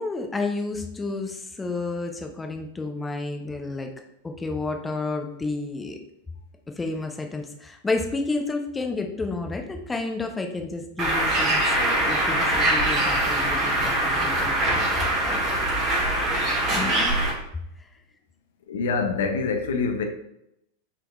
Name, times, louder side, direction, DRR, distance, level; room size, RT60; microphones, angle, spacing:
voice 1, 0.0-3.9 4.2-6.0 6.8-11.8 12.1-14.5 15.2-15.5 16.7-17.2, left 3 dB, 10° left, 0.5 m, -30 dB
Bird, 11.0-17.3, right 1 dB, 35° right, 1.4 m, -23 dB
voice 2, 18.7-20.0, left 4 dB, 60° left, 0.6 m, -25 dB
5.7 x 3.5 x 2.3 m
figure-of-eight pair, 90°, 0 cm